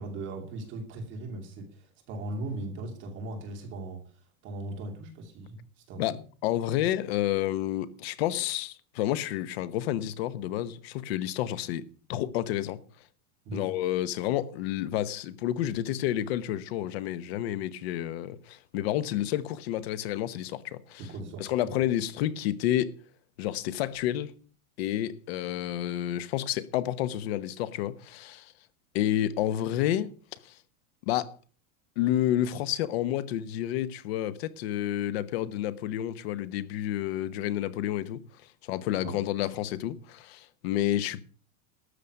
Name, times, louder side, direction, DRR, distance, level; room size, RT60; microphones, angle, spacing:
voice 1, 0.0-4.0 4.4-6.2 13.4-13.7 21.0-21.8 39.0-39.2, right 2 dB, 25° right, 2.6 m, -38 dB
voice 2, 6.0-11.8 12.1-12.8 13.5-21.1 21.4-22.9 23.4-24.3 24.8-28.5 28.9-30.1 30.4-30.6 31.1-31.3 32.0-38.2 38.6-41.2, left 12 dB, 45° left, 1.1 m, -30 dB
13.0 x 6.8 x 7.8 m
supercardioid pair, 180°, 43 cm